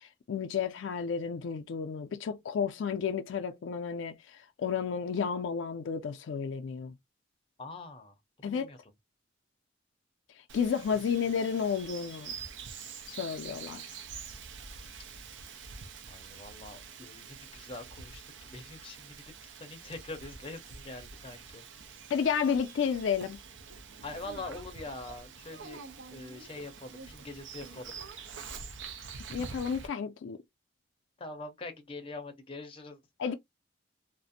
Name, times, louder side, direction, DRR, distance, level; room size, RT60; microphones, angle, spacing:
voice 1, 0.0-4.2 4.6-6.9 8.4-8.7 10.5-12.4 13.1-13.8 22.1-23.4 29.3-30.4 33.2-33.3, left 6 dB, 75° left, 0.3 m, -31 dB
voice 2, 7.6-8.8 10.9-11.0 16.1-21.6 24.0-25.8 26.1-28.0 31.2-33.0, left 2 dB, 30° left, 0.6 m, -44 dB
Bird vocalization bird call bird song, 10.5-29.9, right 5 dB, 70° right, 0.5 m, -46 dB
2.4 x 2.0 x 2.6 m
head